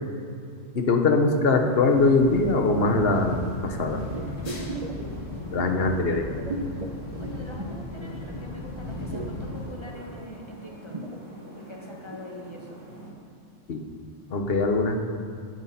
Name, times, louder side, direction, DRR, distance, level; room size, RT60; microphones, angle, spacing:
voice 1, 0.7-3.4 3.6-4.0 5.5-6.3 13.7-13.8 14.3-15.0, left 3 dB, 55° left, 4 dB, 1.3 m, -22 dB
sound 1, 1.3-13.1, right 1 dB, 75° right, 3.5 m, -46 dB
sound 2, 1.9-9.7, left 2 dB, 80° left, 2.1 m, -37 dB
sound 3, 4.1-8.5 8.8-12.3 12.7-12.8, right 2 dB, 30° right, 1.0 m, -37 dB
voice 2, 5.3-5.8 7.2-11.0 11.5-12.8, left 1 dB, 20° left, -2 dB, 1.9 m, -43 dB
17.5 x 9.3 x 4.3 m, 2.4 s
omnidirectional pair, 1.3 m